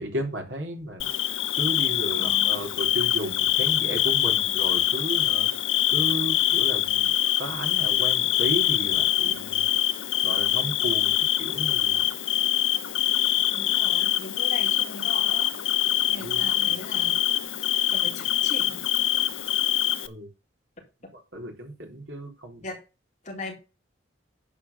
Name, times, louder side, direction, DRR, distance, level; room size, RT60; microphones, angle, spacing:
voice 1, 0.0-5.5 5.9-7.1 7.4-9.7 10.2-11.1 11.4-12.0 16.2-16.5 20.0-20.3 21.3-22.6, right 1 dB, 70° right, 2 dB, 3.6 m, -33 dB
Bird / Cricket, 1.0-20.1, left 12 dB, 85° left, 0.8 m, -24 dB
voice 2, 2.2-2.6 13.5-15.5 16.1-17.2 17.9-18.8 22.6-22.8 23.2-23.5, left 2 dB, 35° left, -1 dB, 4.2 m, -39 dB
11.0 x 4.8 x 6.9 m, 0.30 s
head